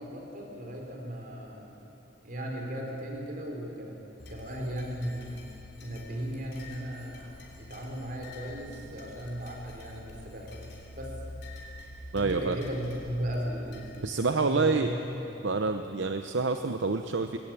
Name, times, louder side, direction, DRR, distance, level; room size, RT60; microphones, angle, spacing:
voice 1, 0.0-1.7 2.2-4.0 4.3-5.4 5.8-7.3 7.6-11.2 12.1-15.2, equal, 45° right, 0 dB, 4.2 m, -36 dB
sound 1, 4.2-14.0, left 2 dB, 60° left, 3.9 m, -47 dB
voice 2, 12.1-12.6 14.0-14.9 15.4-17.4, right 4 dB, 70° right, 7 dB, 0.8 m, -27 dB
21.5 x 17.0 x 9.0 m, 3.0 s
head